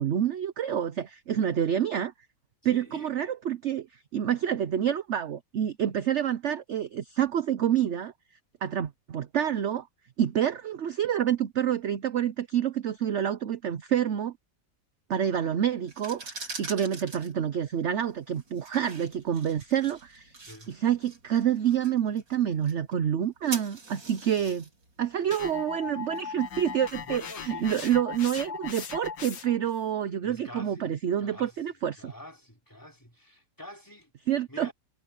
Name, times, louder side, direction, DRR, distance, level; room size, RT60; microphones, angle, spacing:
voice 1, 0.0-2.1 2.6-3.9 4.1-8.1 8.6-9.9 10.2-14.3 15.1-20.3 20.7-24.6 25.0-27.2 27.5-32.1 34.3-34.7, right 9 dB, 55° right, 0.9 m, -28 dB
voice 2, 2.6-3.3 20.5-20.8 24.2-24.4 25.9-26.0 27.0-27.8 30.2-30.9 31.2-34.1 34.5-34.7, equal, 10° left, 4.2 m, -46 dB
sound 1, 15.8-26.6, right 3 dB, 85° right, 5.4 m, -45 dB
sound 2, 25.3-29.7, left 7 dB, 85° left, 2.2 m, -38 dB
omnidirectional pair, 1.9 m